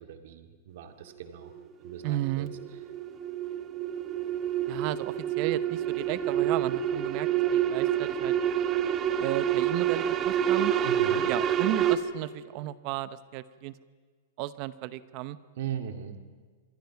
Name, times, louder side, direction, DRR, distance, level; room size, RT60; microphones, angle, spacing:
voice 1, 0.0-1.5 1.8-2.5 10.8-11.3 15.6-16.2, right 9 dB, 60° right, 6 dB, 2.2 m, -39 dB
sound 1, 1.4-12.0, right 10 dB, 20° right, 1.1 m, -28 dB
voice 2, 2.0-2.5 4.7-8.3 9.2-10.7 11.3-13.7 14.4-15.4, right 15 dB, 40° right, 15 dB, 0.8 m, -34 dB
26.5 x 23.0 x 5.9 m, 1.5 s
supercardioid pair, 165°, 0 cm